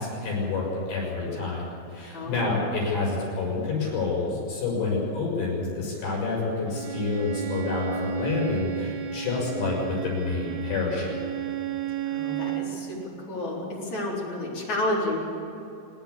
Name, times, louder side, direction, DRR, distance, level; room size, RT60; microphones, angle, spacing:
voice 1, 0.0-11.2, left 3 dB, 65° left, -3 dB, 8.6 m, -28 dB
voice 2, 2.1-2.5 12.1-15.2, left 1 dB, 40° left, -3 dB, 5.2 m, -31 dB
Bowed string instrument, 6.7-12.8, right 9 dB, 60° right, 2.5 m, -32 dB
25.5 x 12.5 x 8.4 m, 2.9 s
omnidirectional pair, 5.2 m